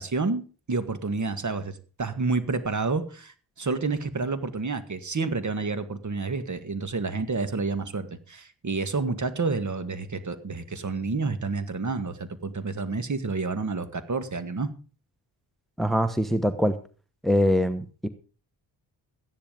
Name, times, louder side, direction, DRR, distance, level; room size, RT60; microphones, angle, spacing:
voice 1, 0.0-1.7 2.0-14.7, right 4 dB, 40° right, 11 dB, 1.9 m, -29 dB
voice 2, 15.8-16.7 17.2-18.1, equal, ahead, 11 dB, 1.1 m, -23 dB
14.0 x 10.5 x 5.2 m, 0.37 s
cardioid pair, 75°, 46 cm